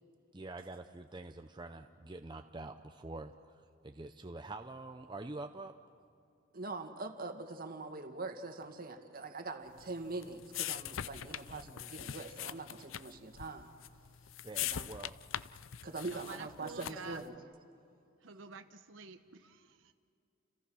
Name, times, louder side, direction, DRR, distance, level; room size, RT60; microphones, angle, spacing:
voice 1, 0.3-5.7 14.4-15.2, right 2 dB, 25° right, 6 dB, 0.7 m, -46 dB
voice 2, 6.5-13.7 14.6-14.9 15.8-17.4, right 3 dB, 50° right, 5 dB, 2.1 m, -43 dB
sound 1, 9.8-17.2, left 11 dB, 80° left, 0.6 m, -42 dB
voice 3, 16.1-17.3 18.2-19.9, right 4 dB, 70° right, 7 dB, 1.0 m, -49 dB
30.0 x 29.5 x 6.3 m, 2.6 s
head